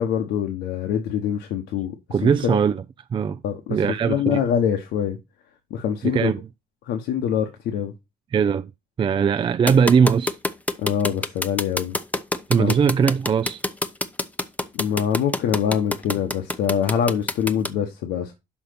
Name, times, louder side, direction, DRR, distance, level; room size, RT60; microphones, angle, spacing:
voice 1, 0.0-2.0 2.2-2.6 3.4-3.8 4.1-5.2 5.7-6.3 6.8-7.9 10.8-12.0 12.6-12.7 14.7-18.3, left 8 dB, 80° left, 1.2 m, -24 dB
voice 2, 2.1-2.8 3.1-3.4 3.7-4.4 6.0-6.4 8.3-8.7 9.0-10.4 12.5-13.6, right 6 dB, 30° right, 0.4 m, -20 dB
sound 1, 9.7-17.7, left 2 dB, 10° left, 0.7 m, -25 dB
5.8 x 5.4 x 6.6 m
cardioid pair, 110°, 17 cm